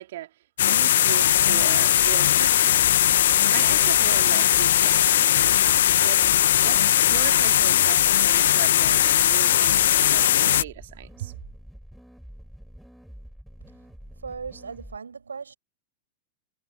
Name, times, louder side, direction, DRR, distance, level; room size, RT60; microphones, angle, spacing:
voice 1, 0.0-2.9 3.5-5.3 6.0-6.2 6.6-11.4, right 14 dB, 55° right, 3.0 m, -37 dB
sound 1, 0.6-10.6, left 11 dB, 60° left, 0.4 m, -19 dB
sound 2, 1.3-15.0, equal, ahead, 7.4 m, -46 dB
voice 2, 14.2-15.5, right 5 dB, 75° right, 5.3 m, -37 dB
figure-of-eight pair, 90°, 0 cm